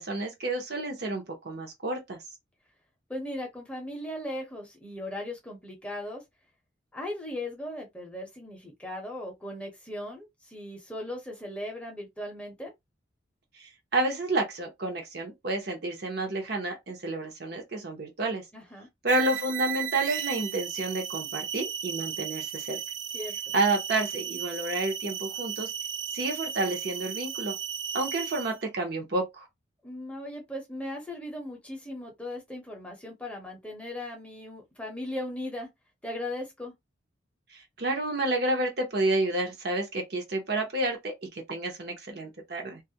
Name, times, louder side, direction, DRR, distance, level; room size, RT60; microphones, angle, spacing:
voice 1, 0.0-2.2 13.5-18.4 19.0-22.8 23.5-25.7 26.1-27.6 27.9-29.5 37.5-42.8, right 2 dB, 55° right, 0.7 m, -30 dB
voice 2, 3.1-6.2 6.9-12.7 18.5-18.9 23.1-23.5 29.8-35.7 36.0-36.7, left 1 dB, 5° left, 0.7 m, -38 dB
sound 1, 19.1-28.6, right 8 dB, 85° right, 0.4 m, -35 dB
2.3 x 2.1 x 2.7 m
head